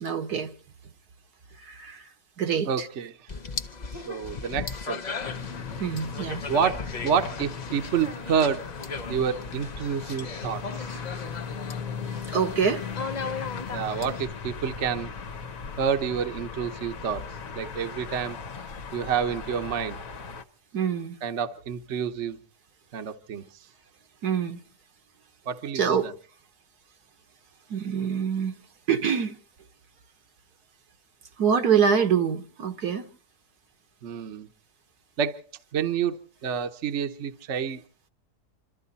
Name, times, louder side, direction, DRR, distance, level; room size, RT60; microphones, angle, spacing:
voice 1, 0.0-0.5 1.6-2.0 2.4-2.9 5.8-6.4 12.3-12.8 20.7-21.2 24.2-24.6 25.8-26.1 27.7-28.6 28.9-29.4 31.4-33.1, right 7 dB, 75° right, 1.8 m, -25 dB
voice 2, 2.6-3.1 3.9-5.2 6.5-8.7 9.1-10.9 13.7-15.1 15.8-17.2 17.5-18.4 18.9-20.0 21.2-22.4 22.9-23.4 25.5-26.1 34.0-34.5 35.2-35.4 35.7-37.8, right 7 dB, 50° right, 1.2 m, -28 dB
sound 1, 3.3-14.3, left 4 dB, 35° left, 0.8 m, -37 dB
sound 2, 5.2-20.4, left 5 dB, 60° left, 1.4 m, -38 dB
27.0 x 13.5 x 4.1 m
omnidirectional pair, 1.7 m